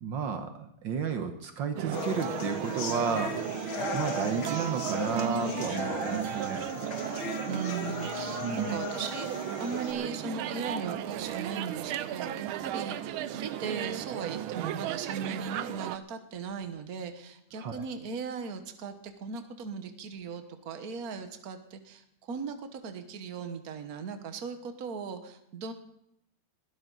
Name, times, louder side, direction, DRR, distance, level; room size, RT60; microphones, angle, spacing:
voice 1, 0.0-3.4 3.9-6.6 8.4-8.8 17.6-17.8, right 6 dB, 65° right, 7 dB, 1.7 m, -32 dB
sound 1, 1.8-16.0, right 11 dB, 80° right, 1.5 m, -35 dB
sound 2, 1.9-9.9, left 5 dB, 85° left, 2.4 m, -37 dB
voice 2, 7.5-25.7, right 5 dB, 50° right, 7 dB, 1.6 m, -38 dB
21.5 x 12.0 x 4.0 m, 0.75 s
omnidirectional pair, 2.2 m